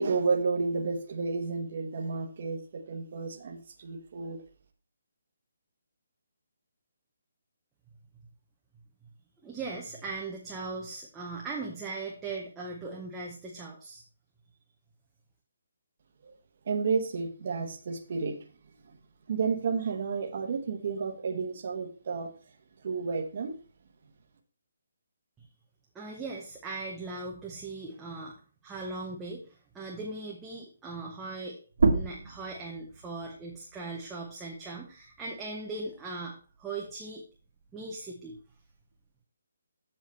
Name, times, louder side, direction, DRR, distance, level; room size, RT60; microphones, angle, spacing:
voice 1, 0.0-4.4 16.2-16.3 16.6-18.4 18.8-19.0 19.3-22.3 22.8-23.5, right 4 dB, 35° right, 3 dB, 1.0 m, -31 dB
voice 2, 9.4-14.0 25.4-25.5 25.9-28.4 28.6-31.6 31.9-37.2 37.7-38.4, right 3 dB, 5° right, -3 dB, 0.7 m, -39 dB
sound 1, 31.7-36.9 37.3-39.1, right 3 dB, 60° right, 1.4 m, -33 dB
7.5 x 7.0 x 4.2 m, 0.38 s
hypercardioid pair, 180°, 0 cm